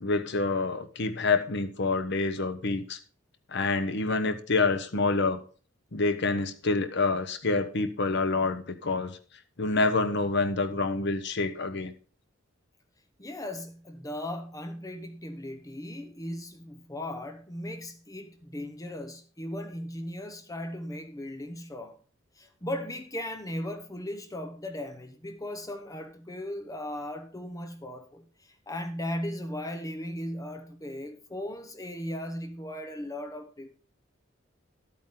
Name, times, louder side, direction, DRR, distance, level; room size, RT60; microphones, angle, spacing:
voice 1, 0.0-3.0 3.5-5.4 5.9-9.2 9.6-11.9, left 3 dB, 60° left, 1.0 m, -27 dB
voice 2, 13.2-22.0 22.4-33.7, left 1 dB, 15° left, 1.0 m, -37 dB
11.5 x 8.8 x 3.8 m
head